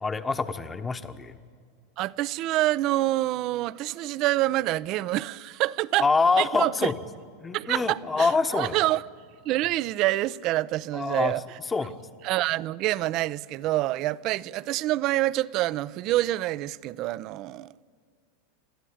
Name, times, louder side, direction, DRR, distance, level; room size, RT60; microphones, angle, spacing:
voice 1, 0.0-1.4 6.0-7.0 7.4-8.8 10.9-11.3 11.7-12.0, left 4 dB, 15° left, 1.1 m, -25 dB
voice 2, 2.0-6.1 6.4-6.9 7.5-9.0 9.4-11.4 12.2-17.7, right 16 dB, 50° right, 0.5 m, -27 dB
27.5 x 12.5 x 8.7 m
hypercardioid pair, 115°, 0 cm